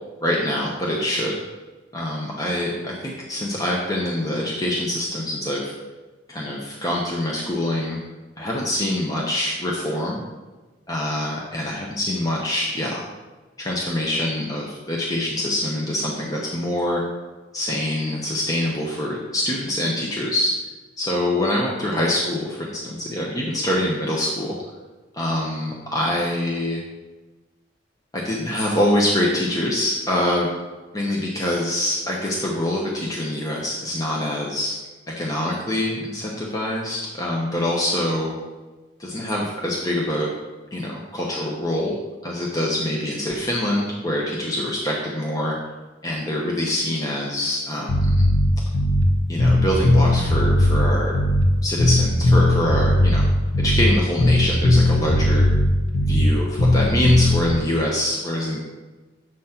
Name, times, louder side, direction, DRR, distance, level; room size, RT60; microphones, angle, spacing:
voice 1, 0.2-1.3 1.9-5.7 6.3-8.0 8.4-10.2 10.9-13.1 13.6-17.0 17.5-20.5 21.0-24.6 25.1-26.8 28.1-30.5 30.9-34.7 35.1-38.3 39.0-40.3 40.7-42.0 42.2-45.6 46.0-48.1 49.3-51.1 51.6-53.2 53.6-55.5 56.0-58.6, left 1 dB, 20° left, -3 dB, 0.8 m, -25 dB
Bass guitar, 47.9-49.1 49.4-51.5 51.8-53.9 54.2-56.3 56.6-57.5, left 1 dB, 90° left, 0.9 m, -17 dB
7.8 x 4.1 x 5.7 m, 1.2 s
head